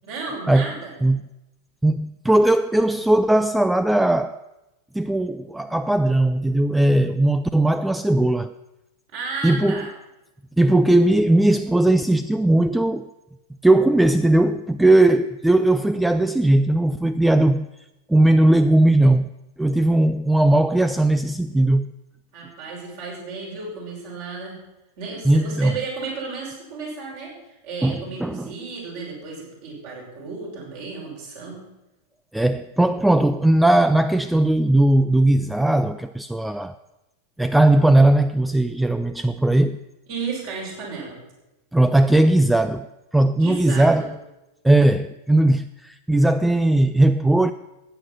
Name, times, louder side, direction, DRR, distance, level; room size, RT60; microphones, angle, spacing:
voice 1, 0.0-0.9 9.1-9.9 22.3-24.5 25.0-27.3 27.6-31.6 40.1-41.2 43.4-44.1, right 4 dB, 50° right, 6.3 m, -33 dB
voice 2, 1.8-4.4 4.9-8.5 9.4-9.8 10.6-13.1 13.6-17.7 18.1-19.3 19.6-21.9 25.3-25.7 27.8-28.5 32.3-36.8 37.4-39.8 41.7-42.9 43.1-44.1 44.6-47.5, right 1 dB, 5° right, 0.4 m, -18 dB
15.5 x 9.1 x 6.0 m
figure-of-eight pair, 90°, 0 cm